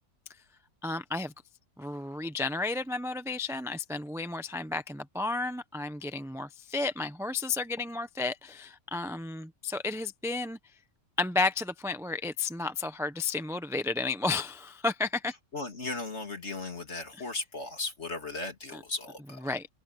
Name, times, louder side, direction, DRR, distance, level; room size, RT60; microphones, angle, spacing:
voice 1, 0.8-1.3 1.8-10.6 11.2-15.3 17.1-17.2 18.7-18.8 19.4-19.7, left 3 dB, ahead, 0.8 m, -32 dB
voice 2, 15.5-19.5, left 3 dB, 45° left, 3.4 m, -36 dB
open air
omnidirectional pair, 1.6 m